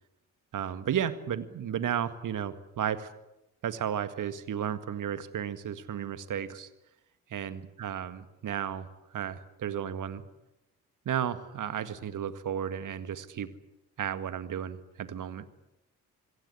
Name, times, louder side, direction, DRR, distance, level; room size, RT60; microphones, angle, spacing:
voice 1, 0.5-3.1 3.6-6.7 7.3-10.2 11.1-13.5 14.0-15.5, right 9 dB, 45° right, 13 dB, 1.9 m, -33 dB
26.5 x 22.0 x 8.4 m, 0.91 s
figure-of-eight pair, 45°, 45 cm